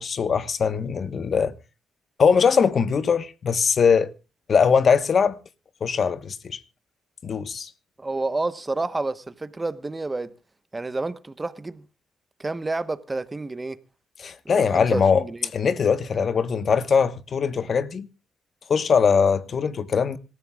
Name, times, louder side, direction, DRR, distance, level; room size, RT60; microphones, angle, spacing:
voice 1, 0.0-1.5 2.2-4.1 4.5-5.4 5.8-6.6 7.2-7.7 14.2-15.2 15.5-18.1 18.7-20.2, left 6 dB, 45° left, 1.1 m, -21 dB
voice 2, 8.0-10.3 10.7-11.8 12.4-13.8 14.4-15.5, right 2 dB, 20° right, 1.1 m, -29 dB
26.0 x 14.5 x 2.4 m
cardioid pair, 90°, 0 cm